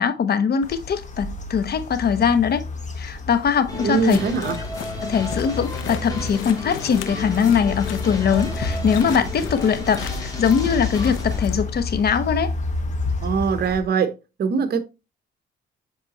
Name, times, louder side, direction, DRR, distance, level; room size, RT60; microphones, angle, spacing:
voice 1, 0.0-2.6 3.0-4.2 5.0-12.5, left 7 dB, 55° left, 1.0 m, -21 dB
sound 1, 0.6-13.8, left 3 dB, 35° left, 1.4 m, -30 dB
sound 2, 3.7-11.4, left 1 dB, 20° left, 2.9 m, -33 dB
voice 2, 3.8-4.6 13.2-14.1 14.4-14.8, right 6 dB, 50° right, 1.0 m, -22 dB
sound 3, 4.1-11.6, left 11 dB, 75° left, 0.7 m, -38 dB
7.6 x 4.9 x 3.0 m
cardioid pair, 90°, 20 cm